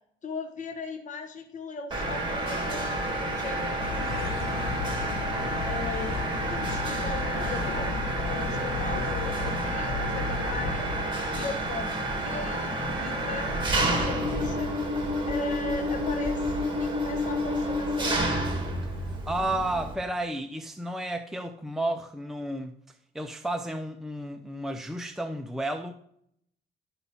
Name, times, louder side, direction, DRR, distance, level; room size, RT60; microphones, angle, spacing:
voice 1, 0.2-4.8 5.6-10.9 11.3-14.7 15.3-18.3, left 3 dB, 40° left, 4 dB, 1.2 m, -38 dB
Mechanisms, 1.9-19.9, right 1 dB, 25° right, 2.5 m, -29 dB
sound 1, 3.8-11.1, left 4 dB, 90° left, 0.9 m, -35 dB
voice 2, 19.0-22.7 23.1-25.9, right 1 dB, ahead, 5 dB, 0.6 m, -32 dB
11.5 x 5.6 x 4.1 m, 0.70 s
cardioid pair, 90°, 20 cm